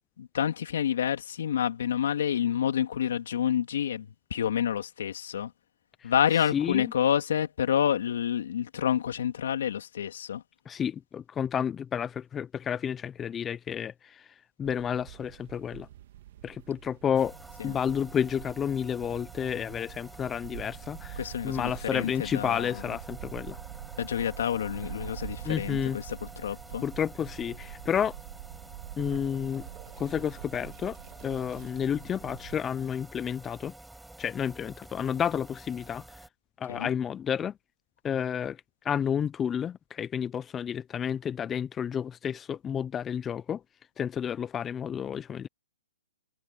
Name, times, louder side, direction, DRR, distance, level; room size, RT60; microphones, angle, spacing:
voice 1, 0.2-5.5 6.0-10.4 17.6-17.7 21.2-22.7 24.0-26.8 36.7-36.9, left 9 dB, 60° left, 3.0 m, -28 dB
voice 2, 6.5-6.9 10.7-15.9 16.4-17.3 17.6-23.6 25.4-26.0 26.8-28.2 29.0-29.7 30.0-33.7 34.2-36.2 36.6-37.5 38.0-43.6 44.0-45.5, left 8 dB, 15° left, 0.6 m, -31 dB
sound 1, 14.6-32.6, right 13 dB, 45° right, 2.7 m, -45 dB
sound 2, 17.1-36.3, right 2 dB, 5° right, 7.6 m, -49 dB
sound 3, 28.3-32.1 34.6-34.7, right 16 dB, 25° right, 6.3 m, -57 dB
hypercardioid pair, 145°, 0 cm